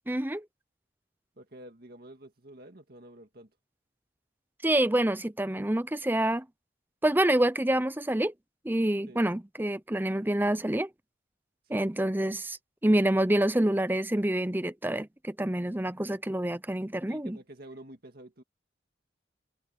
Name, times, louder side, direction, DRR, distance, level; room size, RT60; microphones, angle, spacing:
voice 1, 0.1-0.4 4.6-6.4 7.0-8.3 8.6-10.9 11.7-17.4, right 1 dB, 10° right, 0.7 m, -27 dB
voice 2, 1.4-3.5 9.1-9.2 11.6-11.9 17.1-18.4, right 1 dB, 55° right, 2.1 m, -49 dB
head